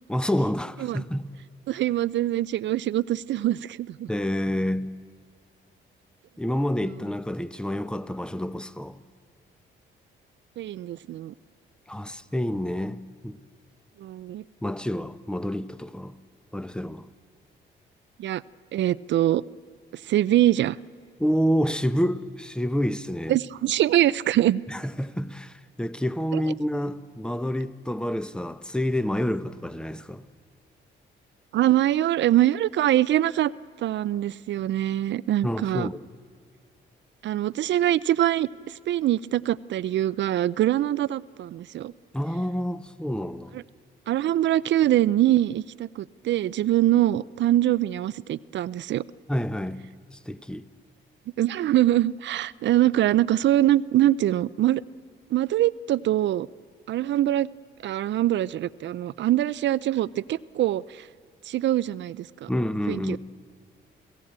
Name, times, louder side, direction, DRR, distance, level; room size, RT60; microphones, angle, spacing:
voice 1, 0.1-1.3 4.1-4.9 6.4-9.0 11.9-13.4 14.6-16.1 16.5-17.1 21.2-23.4 24.7-30.2 35.4-36.0 42.1-43.6 49.3-50.7 62.5-63.2, equal, 5° left, 0.8 m, -28 dB
voice 2, 1.7-4.1 10.6-11.3 14.0-14.4 18.2-18.4 18.7-19.4 20.0-20.8 23.3-24.6 26.3-26.4 31.5-33.5 33.8-35.9 37.2-41.9 43.5-43.6 44.1-49.0 51.4-54.8 55.3-56.5 56.9-57.5 57.8-61.1 61.5-62.5 62.9-63.2, right 13 dB, 65° right, 0.5 m, -23 dB
28.5 x 16.5 x 8.8 m
cardioid pair, 90°, 20 cm